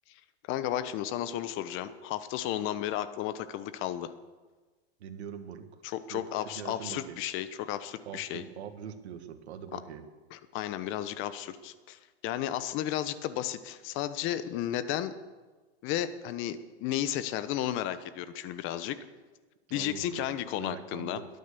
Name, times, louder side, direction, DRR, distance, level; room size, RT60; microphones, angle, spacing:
voice 1, 0.5-4.1 5.8-8.4 9.7-9.8 10.3-15.1 15.8-19.0 19.7-21.2, left 12 dB, 35° left, 13 dB, 1.0 m, -33 dB
voice 2, 5.0-5.8 6.1-7.2 8.1-10.0 19.7-21.3, right 8 dB, 75° right, 7 dB, 1.9 m, -43 dB
22.0 x 9.5 x 6.9 m, 1.3 s
hypercardioid pair, 130°, 33 cm